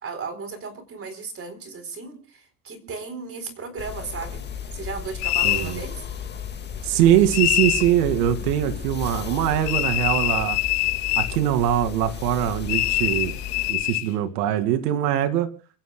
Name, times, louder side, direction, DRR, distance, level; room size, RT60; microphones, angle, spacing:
voice 1, 0.0-4.5 4.7-6.1, right 4 dB, 30° right, 10 dB, 4.1 m, -35 dB
sound 1, 3.8-13.7, left 7 dB, 20° left, 1.9 m, -34 dB
sound 2, 5.2-5.7 7.3-7.9 9.7-11.4 12.7-14.1, left 16 dB, 75° left, 3.0 m, -24 dB
voice 2, 5.4-5.8 6.8-10.6 11.2-13.4 13.7-15.5, right 11 dB, 85° right, 8 dB, 2.5 m, -22 dB
29.0 x 15.5 x 2.3 m, 0.37 s
supercardioid pair, 125°, 46 cm